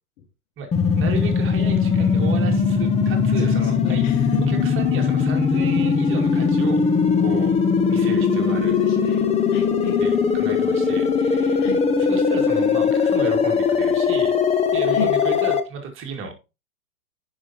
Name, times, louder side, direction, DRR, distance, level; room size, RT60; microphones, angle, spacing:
sound 1, 0.7-15.6, left 6 dB, 15° left, 0.7 m, -20 dB
voice 1, 0.9-4.1 4.4-6.8 7.2-7.5 7.9-8.8 10.0-11.7 12.0-14.4 14.7-16.4, right 5 dB, 30° right, 2.0 m, -33 dB
voice 2, 3.4-4.4 8.9-9.2 9.5-10.0 11.6-11.8 14.9-15.1, left 7 dB, 55° left, 1.4 m, -31 dB
9.6 x 5.7 x 2.8 m
hypercardioid pair, 120°, 44 cm